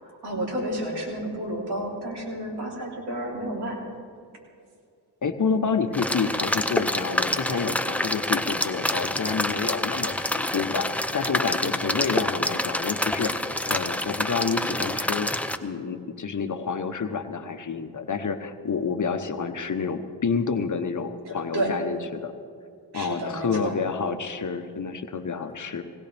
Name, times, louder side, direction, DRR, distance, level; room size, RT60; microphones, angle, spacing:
voice 1, 0.1-3.8 21.5-21.7 22.9-23.8, right 1 dB, 75° right, -2 dB, 3.8 m, -31 dB
voice 2, 5.2-15.3 15.6-22.3 22.9-25.8, left 5 dB, 45° left, 8 dB, 1.1 m, -29 dB
sound 1, 5.9-15.6, left 1 dB, 5° left, 0.7 m, -27 dB
20.5 x 17.5 x 3.5 m, 2.3 s
cardioid pair, 70°, 40 cm